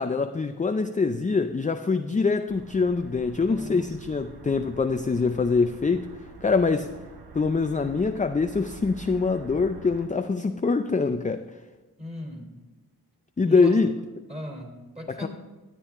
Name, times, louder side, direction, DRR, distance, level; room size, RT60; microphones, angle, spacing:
voice 1, 0.0-6.1 6.4-6.9 7.3-11.5 13.4-13.9 15.1-15.3, left 4 dB, 20° left, 8 dB, 0.4 m, -24 dB
sound 1, 2.5-10.1, right 4 dB, 75° right, 1.1 m, -46 dB
voice 2, 3.5-4.1 12.0-12.5 13.4-13.8 14.3-15.3, left 1 dB, 15° right, 1 dB, 3.0 m, -38 dB
13.0 x 8.4 x 3.6 m, 1.2 s
cardioid pair, 45°, 39 cm